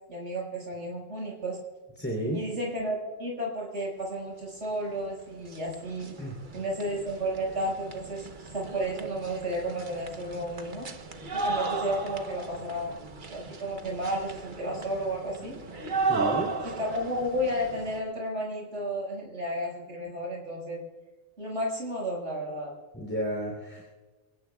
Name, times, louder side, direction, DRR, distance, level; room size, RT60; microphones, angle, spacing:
voice 1, 0.1-1.6 2.3-6.1 6.5-10.9 11.3-13.0 13.3-15.6 16.6-20.8 21.4-22.7, equal, 70° right, -3 dB, 6.3 m, -32 dB
voice 2, 2.0-2.4 6.2-6.4 11.2-11.3 16.1-16.5 22.9-23.8, right 1 dB, 10° left, -2 dB, 3.3 m, -32 dB
sound 1, 4.9-5.0 5.3-18.0, right 4 dB, 45° right, 1.2 m, -35 dB
29.0 x 17.0 x 2.4 m, 1.3 s
omnidirectional pair, 1.3 m